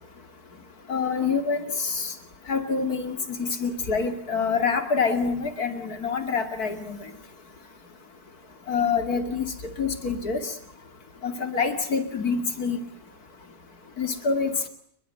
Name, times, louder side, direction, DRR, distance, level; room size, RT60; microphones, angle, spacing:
voice 1, 0.9-2.1 2.5-7.0 8.7-9.4 9.8-10.4 11.2-12.8 14.0-14.7, left 5 dB, 70° left, 8 dB, 3.1 m, -26 dB
29.0 x 22.0 x 9.1 m, 0.68 s
omnidirectional pair, 1.7 m